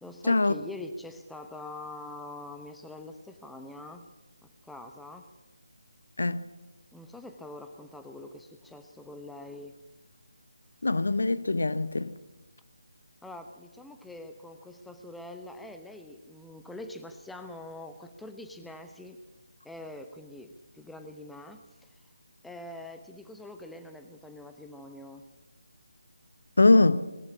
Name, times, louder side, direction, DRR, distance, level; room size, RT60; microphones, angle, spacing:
voice 1, 0.0-4.1 4.6-5.3 6.9-9.7 13.2-19.2 19.6-21.9 22.4-25.3, left 2 dB, ahead, 0.9 m, -44 dB
voice 2, 10.8-12.2 26.6-27.0, left 2 dB, 65° left, 0.9 m, -22 dB
20.5 x 15.5 x 8.4 m
figure-of-eight pair, 155°, 0 cm